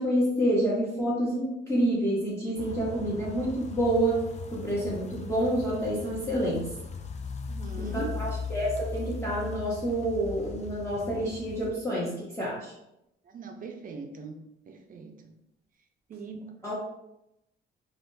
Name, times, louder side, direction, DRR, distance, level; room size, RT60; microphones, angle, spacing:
voice 1, 0.0-4.2 4.5-6.7 7.8-12.7 16.6-16.7, right 1 dB, 15° left, -7 dB, 0.8 m, -28 dB
sound 1, 2.6-11.7, left 4 dB, 35° left, 0.4 m, -38 dB
voice 2, 7.5-8.2 13.3-14.4 14.7-15.3 16.1-16.5, right 4 dB, 45° right, 4 dB, 0.5 m, -40 dB
3.5 x 2.2 x 2.6 m, 0.86 s
cardioid pair, 90°, 20 cm